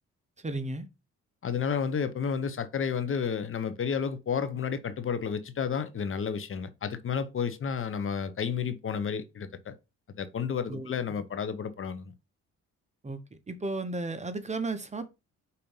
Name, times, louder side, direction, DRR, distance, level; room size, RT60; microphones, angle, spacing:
voice 1, 0.4-0.9 10.7-10.9 13.0-13.2 13.5-15.1, right 2 dB, 25° right, 1.0 m, -34 dB
voice 2, 1.4-9.7 10.2-12.1, left 6 dB, 45° left, 0.8 m, -31 dB
5.3 x 4.2 x 5.5 m
cardioid pair, 90°, 30 cm